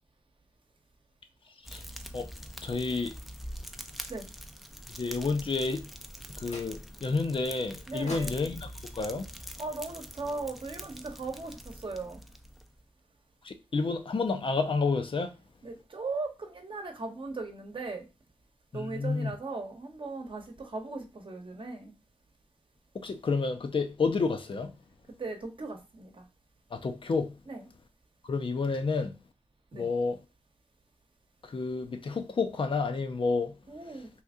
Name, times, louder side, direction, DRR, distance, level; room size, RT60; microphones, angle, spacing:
Fire, 1.6-12.8, equal, ahead, 0.5 m, -45 dB
voice 1, 2.6-3.1 4.9-5.9 6.4-8.7 8.9-9.2 13.4-15.3 18.7-19.3 23.0-24.7 26.7-27.3 28.3-29.2 29.7-30.2 31.4-33.5, left 4 dB, 50° left, 0.5 m, -30 dB
sound 1, 6.4-7.1 8.1-10.3, left 2 dB, 80° left, 1.0 m, -47 dB
voice 2, 7.9-8.4 9.6-12.2 15.6-18.1 18.7-21.9 25.2-26.2 27.5-27.7 29.7-29.9 33.7-34.1, right 3 dB, 50° right, 0.9 m, -38 dB
2.8 x 2.5 x 3.6 m
cardioid pair, 45°, 11 cm